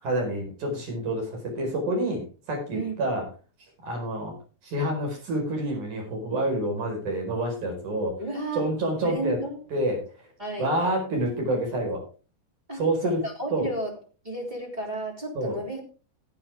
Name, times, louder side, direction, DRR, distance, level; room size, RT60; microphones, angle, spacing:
voice 1, 0.0-3.3 3.8-4.3 4.6-8.1 8.6-9.4 9.7-10.3 10.6-12.0 12.8-13.2 13.5-13.7 15.4-15.6, right 1 dB, 50° right, 1 dB, 6.0 m, -28 dB
voice 2, 8.2-8.7 9.0-9.6 10.4-10.8 12.7-13.9 14.2-15.8, right 1 dB, 10° right, 0 dB, 3.0 m, -32 dB
16.5 x 8.9 x 3.6 m, 0.35 s
omnidirectional pair, 4.6 m